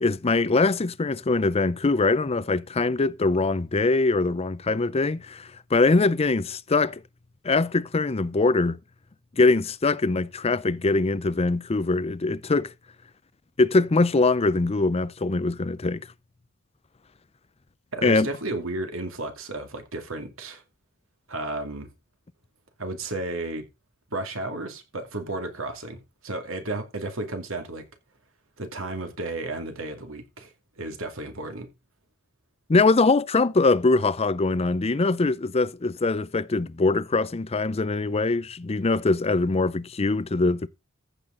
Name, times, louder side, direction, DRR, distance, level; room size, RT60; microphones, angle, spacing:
voice 1, 0.0-7.0 7.4-8.8 9.4-12.7 13.6-16.0 18.0-18.3 32.7-40.7, left 3 dB, 30° left, 0.6 m, -22 dB
voice 2, 17.9-20.6 21.3-21.9 22.8-23.6 24.1-27.8 28.6-31.7, right 2 dB, 70° right, 2.4 m, -33 dB
14.5 x 8.2 x 3.8 m
head